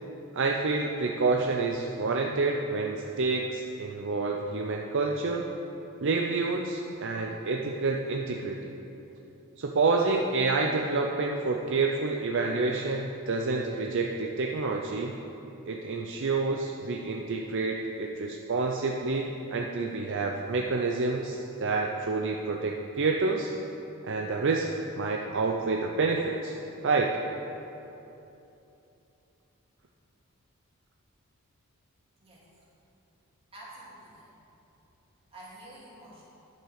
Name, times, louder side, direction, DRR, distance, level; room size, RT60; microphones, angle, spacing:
voice 1, 0.3-5.4 6.0-8.8 9.6-15.2 15.7-23.5 24.0-24.7 25.0-26.5 26.8-27.2, right 3 dB, 55° right, 1 dB, 0.5 m, -28 dB
voice 2, 33.5-34.3 35.3-36.2, right 1 dB, 25° right, -6 dB, 2.5 m, -48 dB
10.5 x 5.7 x 6.5 m, 2.9 s
head